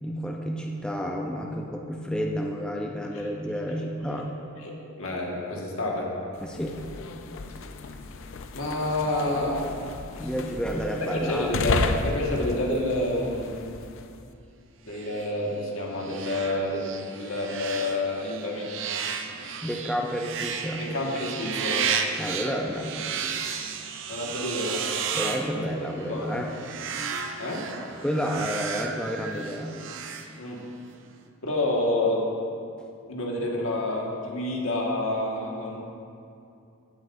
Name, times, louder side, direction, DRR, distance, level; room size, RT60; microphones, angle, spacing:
voice 1, 0.0-4.3 6.4-6.9 10.2-11.6 19.6-20.9 22.2-23.5 23.7-23.8 25.1-26.5 28.0-29.8, equal, 5° left, -1 dB, 0.5 m, -30 dB
voice 2, 4.6-6.1 8.5-9.7 10.1-10.3 11.1-13.5 14.8-18.7 20.8-21.9 24.1-24.8 25.5-25.6 26.0-26.4 27.4-27.7 30.4-30.6 31.4-32.3 33.1-35.8, left 1 dB, 85° left, -2 dB, 1.6 m, -28 dB
sound 1, 6.4-14.2, left 3 dB, 65° left, 0.5 m, -33 dB
sound 2, 14.9-30.8, right 6 dB, 65° right, 0.6 m, -34 dB
17.0 x 7.7 x 2.6 m, 2.6 s
head